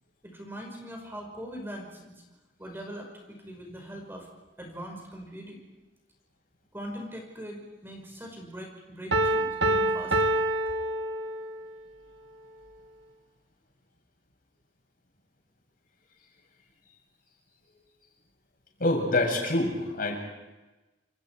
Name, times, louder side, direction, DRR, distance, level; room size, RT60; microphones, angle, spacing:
voice 1, 0.2-2.2 2.6-4.3 4.6-5.6 6.7-10.4, equal, 15° right, 1 dB, 5.4 m, -41 dB
Piano, 9.1-11.7, right 2 dB, 75° right, 1.9 m, -26 dB
voice 2, 18.8-20.2, left 2 dB, 50° left, 0 dB, 7.9 m, -26 dB
29.0 x 28.0 x 4.8 m, 1.1 s
head